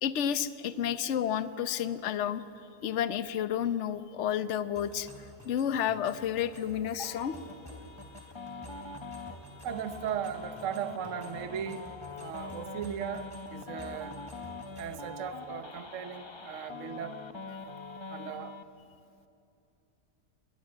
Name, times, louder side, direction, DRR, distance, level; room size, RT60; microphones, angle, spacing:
voice 1, 0.0-2.4 2.8-5.1 5.4-7.3, left 9 dB, 55° left, 13 dB, 0.9 m, -31 dB
sound 1, 4.7-15.1, equal, 10° left, 3.7 m, -51 dB
sound 2, 7.0-18.6, left 4 dB, 30° left, 0.5 m, -44 dB
voice 2, 9.6-11.8 12.2-14.2 14.8-17.2 18.1-18.5, right 9 dB, 55° right, 11 dB, 1.1 m, -37 dB
21.0 x 21.0 x 7.7 m, 2.8 s
omnidirectional pair, 1.8 m